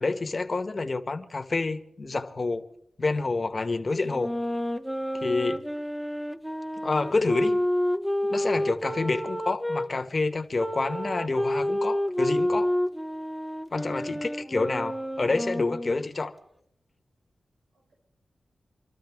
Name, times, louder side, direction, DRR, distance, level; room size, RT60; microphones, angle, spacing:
voice 1, 0.0-2.6 3.0-4.3 5.2-5.6 6.8-7.6 8.3-12.7 13.7-16.3, left 3 dB, 45° left, 1.2 m, -28 dB
sound 1, 4.0-9.9 10.6-16.0, left 1 dB, ahead, 0.6 m, -29 dB
voice 2, 14.0-15.0 17.7-17.9, right 1 dB, 90° right, 6.3 m, -56 dB
26.0 x 13.0 x 3.5 m
cardioid pair, 65°, 0 cm